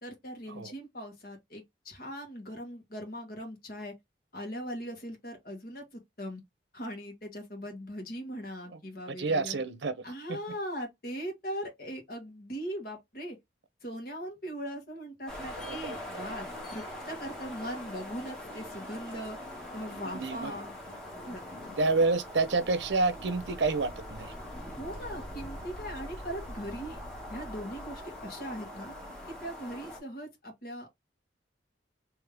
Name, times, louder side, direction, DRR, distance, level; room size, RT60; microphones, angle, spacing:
voice 1, 0.0-3.9 4.3-6.4 6.7-9.6 10.0-13.4 13.8-19.4 19.7-20.7 21.3-21.4 24.8-27.0 27.3-28.9 29.3-30.9, equal, 50° left, 1.7 m, -40 dB
voice 2, 9.1-9.9 15.6-16.0 20.1-20.5 21.8-24.3, right 3 dB, 70° right, 0.6 m, -28 dB
sound 1, 15.3-30.0, left 1 dB, 5° left, 1.4 m, -42 dB
3.6 x 3.1 x 3.4 m
head